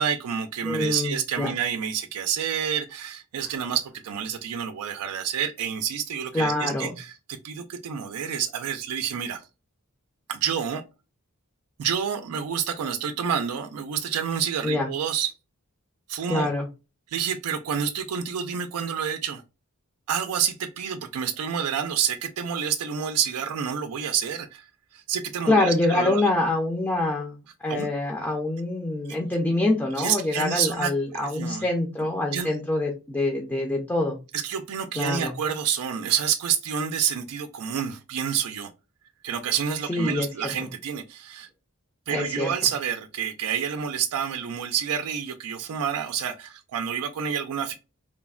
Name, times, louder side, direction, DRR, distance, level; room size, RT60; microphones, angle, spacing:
voice 1, 0.0-9.4 10.3-10.8 11.8-15.3 16.1-16.5 17.1-19.4 20.1-24.7 24.9-26.3 27.7-27.9 30.0-31.7 32.3-32.5 34.3-38.7 39.2-41.5 42.1-47.7, right 8 dB, 85° right, 0.4 m, -28 dB
voice 2, 0.6-1.5 6.3-6.9 14.6-14.9 16.3-16.7 25.5-34.2 35.0-35.3 39.9-40.5 42.1-42.5, left 2 dB, 10° left, 0.4 m, -25 dB
3.2 x 2.1 x 2.3 m
head